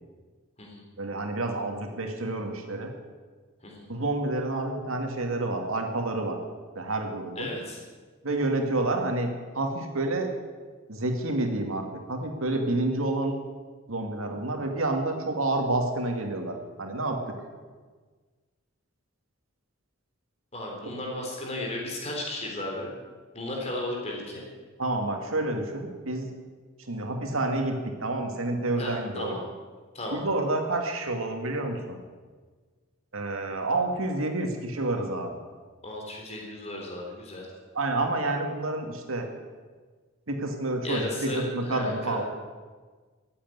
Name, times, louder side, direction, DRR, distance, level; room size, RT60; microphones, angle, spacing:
voice 1, 1.0-2.9 3.9-6.4 6.8-7.5 8.2-10.3 10.9-13.3 13.9-17.2 24.8-26.3 26.9-29.3 30.1-32.0 33.1-35.4 37.7-39.3 40.3-42.2, right 2 dB, 85° right, 3 dB, 2.3 m, -29 dB
voice 2, 7.4-7.8 20.5-22.9 23.3-24.4 28.8-29.4 29.9-30.2 35.8-37.5 40.8-42.2, left 1 dB, 30° left, -1 dB, 3.5 m, -34 dB
14.0 x 8.6 x 9.5 m, 1.4 s
head